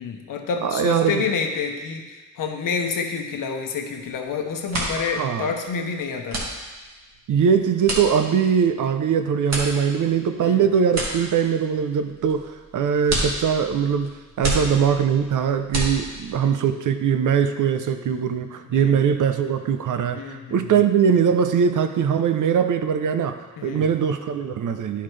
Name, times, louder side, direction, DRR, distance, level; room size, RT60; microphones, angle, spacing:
voice 1, 0.0-6.5 10.4-10.7 14.4-14.7 18.7-19.0 20.1-20.7 23.6-23.9, left 5 dB, 90° left, 4 dB, 0.9 m, -28 dB
voice 2, 0.6-1.2 4.9-5.5 7.3-25.0, right 7 dB, 70° right, 8 dB, 0.6 m, -21 dB
sound 1, 4.1-4.3 4.5-16.5, right 1 dB, 55° right, 1.8 m, -30 dB
10.5 x 5.7 x 3.3 m, 1.3 s
wide cardioid pair, 125°, 32 cm